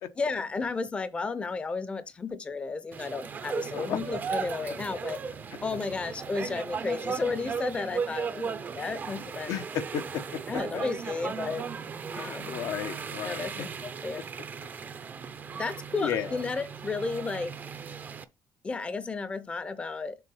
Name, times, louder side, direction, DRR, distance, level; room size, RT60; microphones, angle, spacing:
voice 1, 0.2-5.2 5.6-9.5 10.5-11.6 12.1-12.6 13.2-13.7 14.0-14.2 15.5-17.5 18.6-20.2, left 4 dB, 20° left, 0.6 m, -33 dB
sound 1, 2.9-18.2, right 6 dB, 30° right, 0.6 m, -37 dB
voice 2, 9.5-10.2 10.5-10.8 12.1-13.5 16.0-16.4, left 9 dB, 80° left, 0.9 m, -33 dB
6.8 x 3.9 x 5.5 m
cardioid pair, 160°, 6 cm